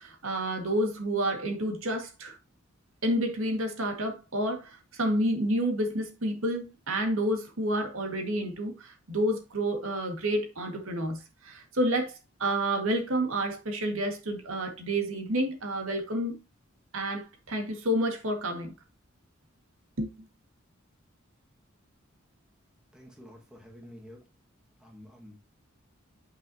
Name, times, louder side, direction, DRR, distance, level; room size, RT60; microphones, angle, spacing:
voice 1, 0.0-2.4 3.0-11.2 11.4-12.1 12.4-16.4 16.9-18.7 20.0-20.1, right 1 dB, 80° right, 1.8 m, -29 dB
voice 2, 22.9-24.2 24.8-25.3, equal, 5° right, 1.6 m, -49 dB
8.5 x 5.6 x 2.8 m
head